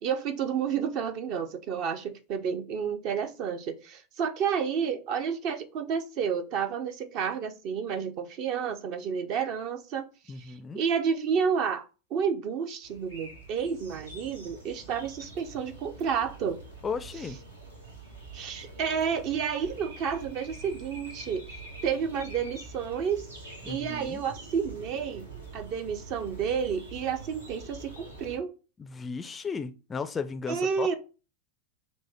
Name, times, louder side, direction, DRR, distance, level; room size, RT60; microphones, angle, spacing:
voice 1, 0.0-10.0 10.4-11.9 12.1-16.6 18.3-23.2 23.7-25.3 25.5-28.5 30.5-31.0, right 7 dB, 45° right, 0.6 m, -30 dB
voice 2, 10.3-10.8 16.8-17.4 23.6-24.2 28.8-30.9, left 5 dB, 20° left, 0.4 m, -35 dB
sound 1, 12.8-28.4, right 3 dB, 80° right, 1.1 m, -45 dB
6.1 x 2.1 x 3.4 m
figure-of-eight pair, 90°, 0 cm